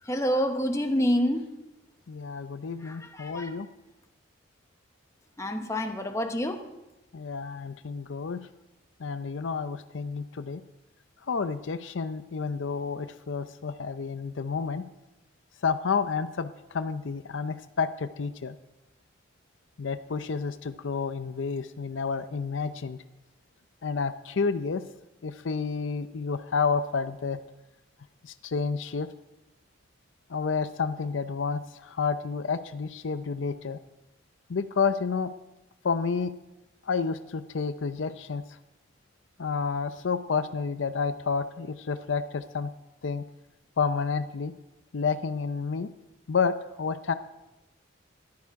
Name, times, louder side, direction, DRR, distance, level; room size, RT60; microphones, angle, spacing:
voice 1, 0.1-1.5 2.8-3.5 5.4-6.6, equal, 15° left, 5 dB, 1.0 m, -27 dB
voice 2, 2.1-3.7 7.1-8.4 9.0-10.6 11.3-14.8 15.6-18.6 19.8-23.0 23.8-24.8 25.2-27.4 28.2-29.1 30.3-33.8 34.5-35.3 35.8-36.3 36.9-38.4 39.4-42.7 43.0-43.3 43.8-44.5 44.9-45.9 46.3-47.1, left 5 dB, 70° left, 11 dB, 0.5 m, -30 dB
14.5 x 11.5 x 4.7 m, 0.99 s
head